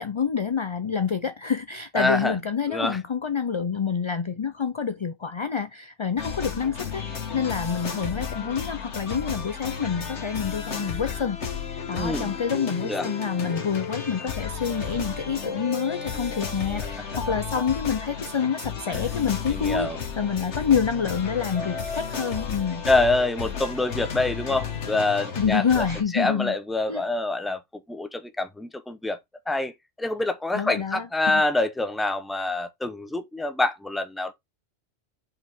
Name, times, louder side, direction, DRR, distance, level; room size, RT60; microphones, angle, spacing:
voice 1, 0.0-11.4 11.9-19.9 20.2-22.8 25.4-26.5 26.9-27.0 30.5-31.4, left 6 dB, 40° left, 0.4 m, -27 dB
voice 2, 1.9-2.4 2.7-3.0 11.9-12.4 12.8-13.1 18.9-19.1 19.5-20.0 22.8-25.9 26.1-27.6 27.9-29.2 29.5-34.3, left 2 dB, ahead, 0.7 m, -26 dB
sound 1, 6.2-26.0, left 6 dB, 90° left, 1.8 m, -33 dB
5.8 x 5.1 x 3.6 m
omnidirectional pair, 1.1 m